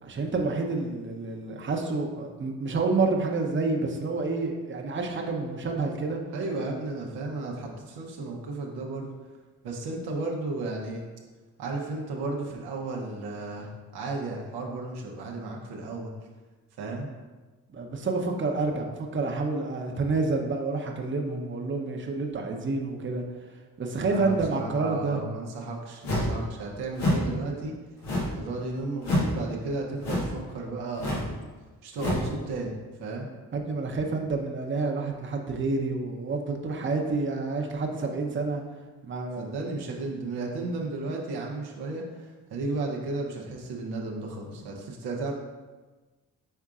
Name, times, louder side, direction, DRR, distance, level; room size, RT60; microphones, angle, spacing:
voice 1, 0.0-6.2 17.7-23.2 23.8-25.2 33.5-38.6 39.0-39.5, right 3 dB, 30° right, 2 dB, 0.7 m, -28 dB
voice 2, 6.3-9.1 9.6-11.0 11.6-16.1 16.8-17.1 24.1-27.7 28.4-31.2 31.8-32.7 33.0-33.3 39.4-45.3, right 3 dB, 85° right, -1 dB, 0.8 m, -34 dB
sound 1, 26.0-26.4 26.9-27.3 28.0-28.4 29.0-29.4 30.0-30.4 31.0-31.3 32.0-32.3, left 1 dB, 90° left, 1.1 m, -27 dB
5.5 x 3.6 x 2.4 m, 1.3 s
supercardioid pair, 50°, 38 cm